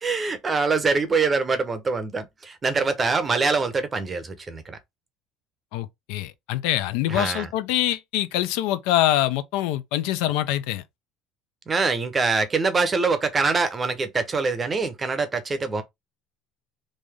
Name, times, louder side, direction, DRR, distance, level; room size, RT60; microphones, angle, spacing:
voice 1, 0.0-4.8 7.1-7.5 11.7-15.8, right 4 dB, 20° right, 0.6 m, -24 dB
voice 2, 5.7-10.8, left 13 dB, 75° left, 0.5 m, -24 dB
3.2 x 2.7 x 3.5 m
cardioid pair, 150°, 0 cm